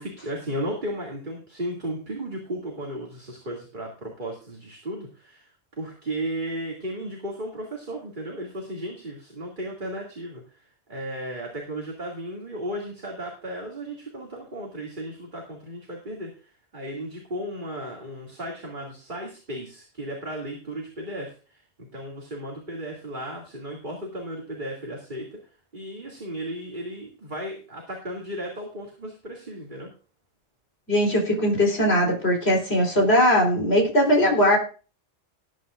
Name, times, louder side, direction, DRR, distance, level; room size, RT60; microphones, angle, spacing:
voice 1, 0.0-25.4 25.7-29.9, right 1 dB, 40° right, -1 dB, 2.7 m, -35 dB
voice 2, 30.9-34.6, equal, 60° left, 0 dB, 4.2 m, -20 dB
20.0 x 9.2 x 2.5 m, 0.37 s
omnidirectional pair, 1.2 m